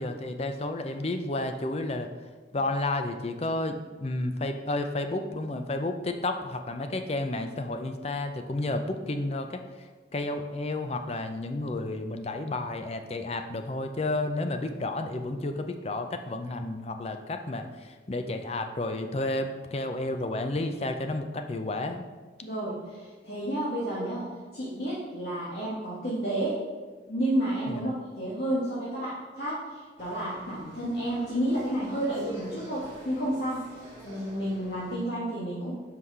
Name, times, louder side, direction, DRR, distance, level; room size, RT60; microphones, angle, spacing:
voice 1, 0.0-2.1 2.5-22.0 27.7-27.8, left 2 dB, 35° left, 7 dB, 0.5 m, -31 dB
voice 2, 22.4-24.3 24.5-26.6 27.1-33.6 34.0-35.7, right 1 dB, 60° left, -8 dB, 1.5 m, -31 dB
sound 1, 30.0-35.0, equal, 15° right, 2.3 m, -49 dB
5.8 x 4.8 x 5.4 m, 1.4 s
head